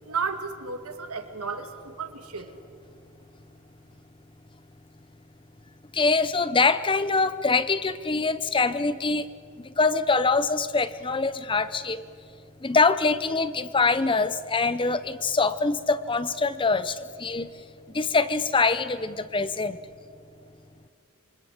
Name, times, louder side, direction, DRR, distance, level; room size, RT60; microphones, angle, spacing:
voice 1, 0.0-2.6, right 5 dB, 80° right, 2.3 m, -33 dB
voice 2, 5.9-9.3 9.6-12.0 12.6-17.5 17.9-19.8, left 4 dB, 25° left, 0.7 m, -24 dB
27.5 x 24.5 x 8.1 m
head